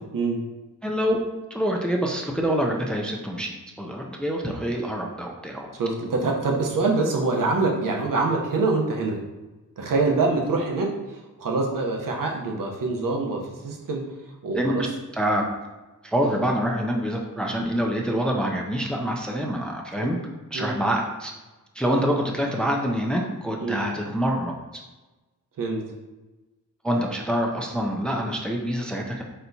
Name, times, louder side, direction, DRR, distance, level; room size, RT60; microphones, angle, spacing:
voice 1, 0.8-1.2 1.5-5.7 14.5-14.9 15.1-15.4 16.0-20.2 20.5-21.3 21.7-24.8 26.8-29.2, equal, 5° left, 0 dB, 0.4 m, -26 dB
voice 2, 5.8-9.2 9.8-14.0 14.4-14.8 20.0-20.1 20.5-20.7 23.6-23.8 25.6-25.8, right 3 dB, 80° right, 0 dB, 0.9 m, -25 dB
4.5 x 4.3 x 2.7 m, 1.1 s
wide cardioid pair, 165°, 32 cm